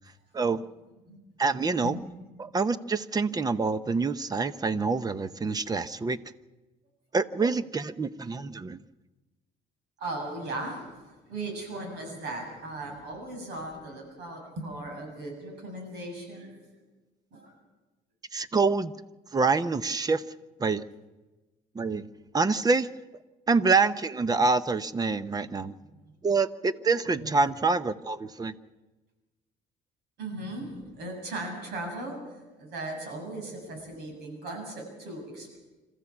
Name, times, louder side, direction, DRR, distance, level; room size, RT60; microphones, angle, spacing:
voice 1, 0.3-0.7 1.4-2.0 2.4-6.2 7.1-8.8 18.3-18.9 19.3-20.2 20.6-20.8 21.7-22.9 23.5-25.7 26.2-28.5, right 4 dB, 20° right, 15 dB, 0.8 m, -26 dB
voice 2, 10.0-16.6 17.3-17.5 25.9-26.0 27.2-27.4 30.2-35.6, right 2 dB, 75° right, 3 dB, 7.5 m, -38 dB
26.5 x 14.5 x 7.3 m, 1.2 s
cardioid pair, 110°, 17 cm